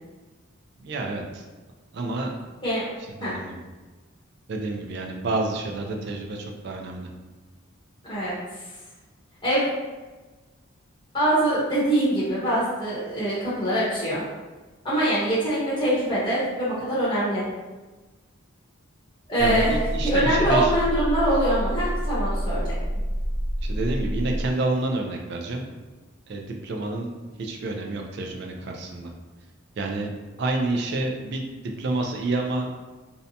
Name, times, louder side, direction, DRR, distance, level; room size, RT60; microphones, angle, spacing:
voice 1, 0.8-1.4 1.9-2.3 3.2-3.6 4.5-7.1 19.4-20.8 23.6-25.7 26.3-27.1 27.4-29.1 29.8-30.1 30.4-32.7, right 2 dB, 50° right, 2 dB, 0.3 m, -29 dB
voice 2, 8.0-8.6 9.4-9.8 11.1-14.2 14.8-17.4 19.3-19.7 20.0-22.7, right 1 dB, 20° left, -9 dB, 0.6 m, -23 dB
sound 1, 19.4-24.5, equal, 70° left, 0.7 m, -28 dB
2.6 x 2.1 x 2.6 m, 1.3 s
head